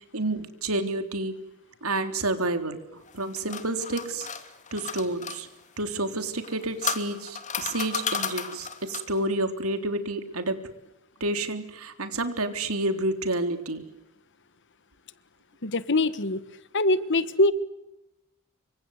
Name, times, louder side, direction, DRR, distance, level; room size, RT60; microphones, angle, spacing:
voice 1, 0.0-1.3 1.8-2.8 3.1-4.3 4.7-5.5 5.8-10.6 11.2-13.9, right 2 dB, 75° right, 8 dB, 3.6 m, -29 dB
sound 1, 3.1-5.4 6.4-9.2, left 7 dB, 35° left, 2.8 m, -33 dB
voice 2, 15.6-16.4 16.7-17.5, left 2 dB, 55° left, 15 dB, 1.4 m, -23 dB
28.5 x 25.5 x 8.2 m, 0.91 s
head